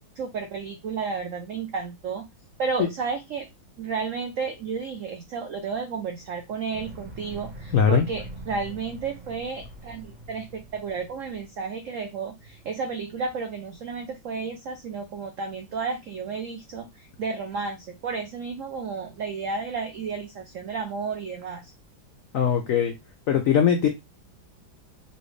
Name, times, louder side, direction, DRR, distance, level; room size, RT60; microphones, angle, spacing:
voice 1, 0.2-2.3 2.6-3.5 3.8-21.7, right 5 dB, 85° right, 0.7 m, -32 dB
sound 1, 6.7-11.5, right 1 dB, 10° right, 0.5 m, -42 dB
voice 2, 7.7-8.0 22.3-22.9 23.3-23.9, left 7 dB, 80° left, 0.7 m, -20 dB
4.3 x 2.7 x 3.1 m
omnidirectional pair, 2.1 m